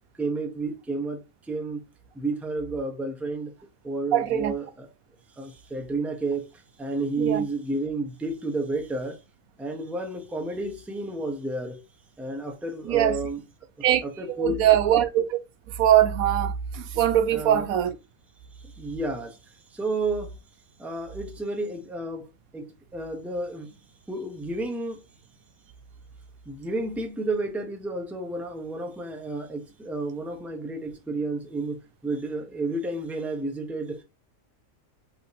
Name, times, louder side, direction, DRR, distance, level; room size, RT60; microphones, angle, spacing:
voice 1, 0.2-1.8 2.1-3.5 3.8-4.9 5.4-9.2 9.6-11.8 12.2-13.4 14.0-14.7 17.3-17.7 18.6-20.4 20.8-23.8 24.1-25.0 26.5-34.0, right 2 dB, ahead, 0.7 m, -31 dB
voice 2, 4.1-4.5 7.2-7.4 12.9-13.2 13.8-14.0 14.3-15.4 15.8-17.9, right 11 dB, 80° right, 1.1 m, -22 dB
5.1 x 3.0 x 3.2 m
omnidirectional pair, 1.5 m